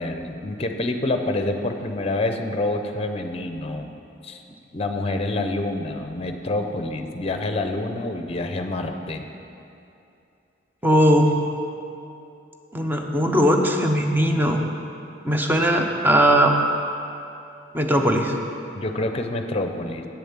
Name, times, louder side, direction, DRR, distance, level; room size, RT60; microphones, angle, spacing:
voice 1, 0.0-3.9 4.2-4.4 4.7-9.3 18.7-20.1, left 2 dB, 35° left, 6 dB, 0.6 m, -27 dB
voice 2, 10.8-11.3 12.7-14.6 15.2-16.5 17.7-18.3, equal, 10° right, 3 dB, 0.7 m, -19 dB
8.1 x 7.1 x 7.2 m, 2.7 s
head